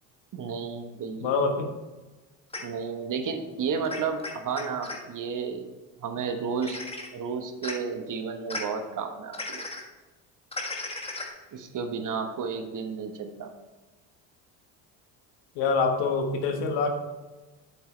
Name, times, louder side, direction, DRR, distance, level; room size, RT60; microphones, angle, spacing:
voice 1, 0.3-1.5 2.6-5.6 6.0-6.8 7.1-9.6 11.5-13.5, right 5 dB, 45° right, 6 dB, 1.2 m, -32 dB
voice 2, 1.2-1.7 15.5-16.9, left 4 dB, 70° left, 5 dB, 1.4 m, -25 dB
sound 1, 2.5-2.6 3.8-5.0 6.6-7.1 7.6-7.7 8.5-8.6 9.3-9.8 10.5-11.3, left 2 dB, 15° left, 1.6 m, -35 dB
8.3 x 7.9 x 3.3 m, 1.2 s
hypercardioid pair, 70°, 45 cm